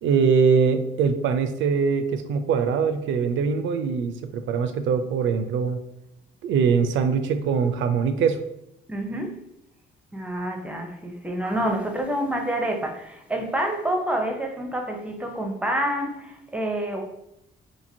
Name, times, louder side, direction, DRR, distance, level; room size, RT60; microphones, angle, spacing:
voice 1, 0.0-5.8 6.4-8.4, right 6 dB, 75° right, 9 dB, 0.4 m, -22 dB
voice 2, 8.9-9.4 10.1-17.0, right 1 dB, 5° right, 3 dB, 0.5 m, -28 dB
2.9 x 2.6 x 2.6 m, 0.83 s
cardioid pair, 90°, 20 cm